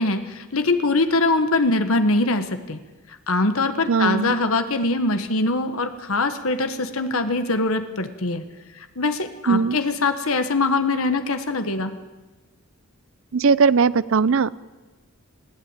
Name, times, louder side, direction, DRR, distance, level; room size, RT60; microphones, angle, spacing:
voice 1, 0.0-2.8 3.3-8.4 9.0-11.9, left 2 dB, 65° left, 8 dB, 1.3 m, -22 dB
voice 2, 3.9-4.4 9.5-9.8 13.3-14.6, right 5 dB, 60° right, 18 dB, 0.6 m, -19 dB
20.5 x 14.5 x 8.9 m, 1.2 s
head